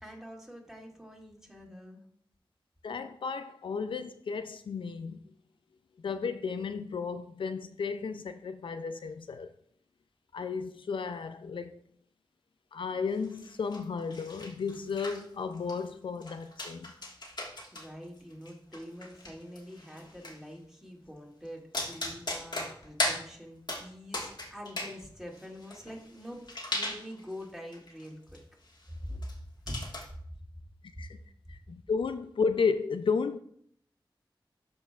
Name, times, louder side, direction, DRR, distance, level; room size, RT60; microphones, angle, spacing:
voice 1, 0.0-2.0 17.7-26.4 26.7-28.2 29.0-29.2 29.7-29.8, equal, 5° right, 2.3 m, -45 dB
voice 2, 2.8-5.2 6.0-9.5 10.3-11.8 12.7-16.9 31.0-31.2 31.5-33.4, left 5 dB, 75° left, 0.3 m, -33 dB
sound 1, 13.2-13.8 14.1-15.2 15.5-15.9 16.2-17.9 18.2-20.4 21.4-21.5 21.7-23.2 23.7-23.8 24.1-24.9 25.3-27.4 27.7-28.1 28.3-28.4 28.7-28.9 29.2-29.3 29.7-30.0, left 1 dB, 55° left, 1.5 m, -37 dB
12.0 x 4.5 x 2.3 m
cardioid pair, 40°, 9 cm